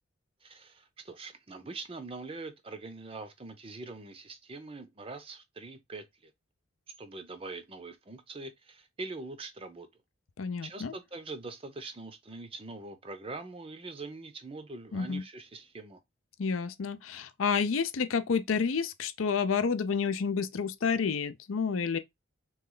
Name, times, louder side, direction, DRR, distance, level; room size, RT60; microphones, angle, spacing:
voice 1, 0.4-6.3 7.0-9.9 10.6-16.0, right 3 dB, 30° right, 0.6 m, -43 dB
voice 2, 10.4-10.9 14.9-15.2 16.4-22.0, left 5 dB, 85° left, 0.5 m, -29 dB
3.3 x 3.1 x 3.8 m
head